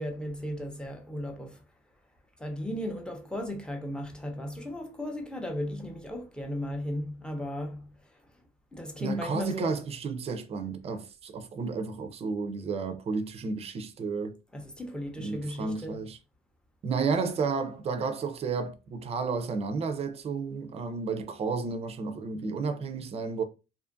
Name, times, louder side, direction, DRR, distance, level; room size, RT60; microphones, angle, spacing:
voice 1, 0.0-1.6 2.4-8.2 8.7-9.7 14.5-16.0, left 1 dB, 5° left, 0.6 m, -36 dB
voice 2, 9.0-14.4 15.2-16.2 16.8-23.4, right 4 dB, 35° right, 0.5 m, -32 dB
2.5 x 2.4 x 2.5 m
cardioid pair, 110°, 17 cm